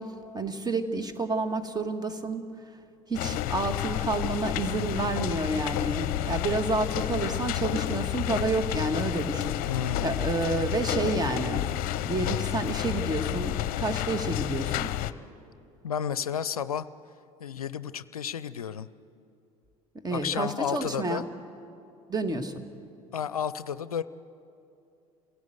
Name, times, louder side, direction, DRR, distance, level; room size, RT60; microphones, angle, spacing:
voice 1, 0.0-2.5 3.1-9.6 10.0-11.6 12.0-14.9 20.0-21.2 22.1-22.7, right 3 dB, 20° right, 8 dB, 1.9 m, -30 dB
sound 1, 3.1-15.1, left 14 dB, 55° left, 0.7 m, -30 dB
voice 2, 9.7-10.2 15.8-16.9 17.4-18.9 20.1-21.2 23.1-24.0, left 8 dB, 85° left, 15 dB, 0.5 m, -32 dB
27.5 x 17.0 x 8.0 m, 2.6 s
figure-of-eight pair, 70°, 18 cm